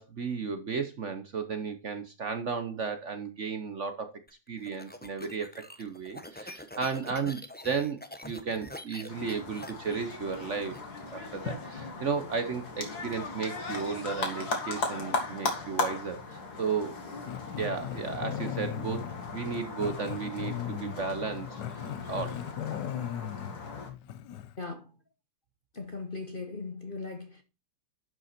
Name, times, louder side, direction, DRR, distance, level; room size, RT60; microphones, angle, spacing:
voice 1, 0.0-4.1 4.5-5.5 5.8-10.8 11.1-16.9 17.6-19.0 19.3-22.4, right 5 dB, 50° right, 1.1 m, -34 dB
sound 1, 4.3-10.8, left 1 dB, 10° left, 0.5 m, -45 dB
sound 2, 9.1-23.9, left 3 dB, 60° left, 2.6 m, -37 dB
Growling, 17.3-24.6, left 10 dB, 75° left, 1.3 m, -38 dB
voice 2, 24.6-25.0 25.7-27.4, left 3 dB, 35° left, 1.0 m, -39 dB
11.5 x 5.5 x 4.3 m
omnidirectional pair, 2.0 m